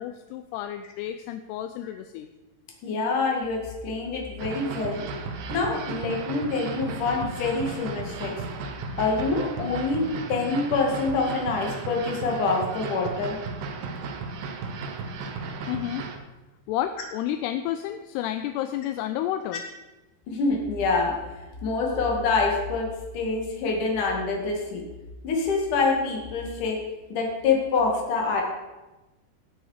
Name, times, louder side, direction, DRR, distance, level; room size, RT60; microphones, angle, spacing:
voice 1, 0.0-2.3 15.7-16.0 16.7-19.6, left 12 dB, 85° left, 8 dB, 2.5 m, -31 dB
voice 2, 2.8-5.0 5.5-8.3 9.0-10.0 10.3-13.4 20.3-21.1 21.6-22.9 23.1-24.8 25.2-26.8 27.1-28.4, left 4 dB, 55° left, 0 dB, 3.2 m, -26 dB
sound 1, 4.4-16.2, right 4 dB, 70° right, 2.0 m, -35 dB
17.5 x 6.4 x 4.9 m, 1.1 s
omnidirectional pair, 4.8 m